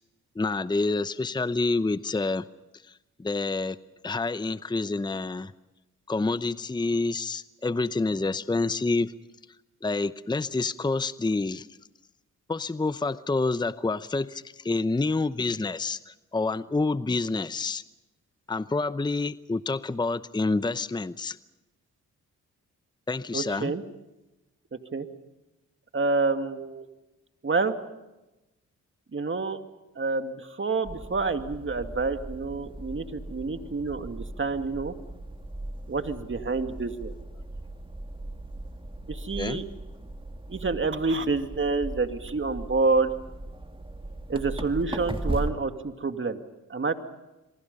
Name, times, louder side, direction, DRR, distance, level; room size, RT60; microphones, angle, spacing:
voice 1, 0.4-2.4 2.8-3.8 4.0-5.5 6.1-9.1 9.8-11.7 12.5-17.8 18.5-21.4 23.1-23.7 39.4-39.6, left 3 dB, 15° left, 15 dB, 0.7 m, -28 dB
voice 2, 23.3-23.8 24.9-25.1 25.9-26.9 27.4-27.7 29.1-29.6 30.0-34.9 35.9-37.1 39.1-39.6 40.5-43.1 44.3-46.4 46.7-46.9, right 3 dB, 35° right, 7 dB, 2.3 m, -28 dB
sound 1, 30.8-45.5, right 1 dB, 15° right, 2.5 m, -38 dB
27.5 x 23.5 x 5.4 m, 0.99 s
supercardioid pair, 55°, 33 cm